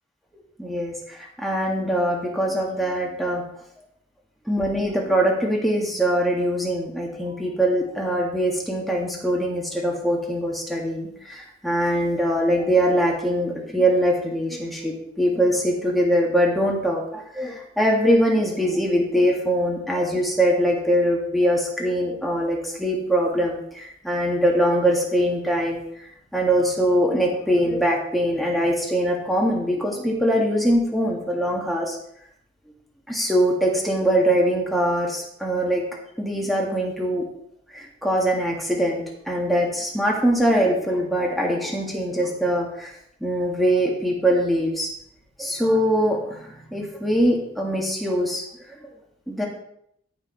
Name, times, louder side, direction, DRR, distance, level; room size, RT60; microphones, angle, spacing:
voice 1, 0.6-3.4 4.5-25.8 26.3-32.0 33.1-35.8 36.2-37.2 37.7-42.9 43.2-44.9 45.4-48.4 48.7-48.9 49.3-49.5, equal, ahead, -2 dB, 1.8 m, -22 dB
14.5 x 4.9 x 4.6 m, 0.73 s
head